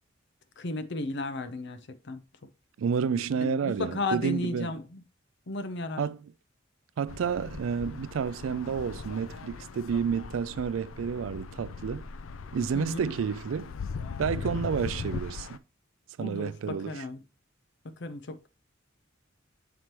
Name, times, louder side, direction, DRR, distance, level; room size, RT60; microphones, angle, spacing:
voice 1, 0.6-1.8 2.0-2.2 3.4-5.0 5.5-6.0 12.7-13.1 16.2-17.2 18.0-18.5, left 2 dB, 60° left, 0.8 m, -34 dB
voice 2, 2.8-4.8 6.0-6.3 7.0-12.1 12.5-13.7 14.2-15.6 16.2-17.0, right 6 dB, 80° right, 0.4 m, -30 dB
sound 1, 7.1-15.6, left 5 dB, 85° left, 0.5 m, -39 dB
7.1 x 4.5 x 3.0 m
head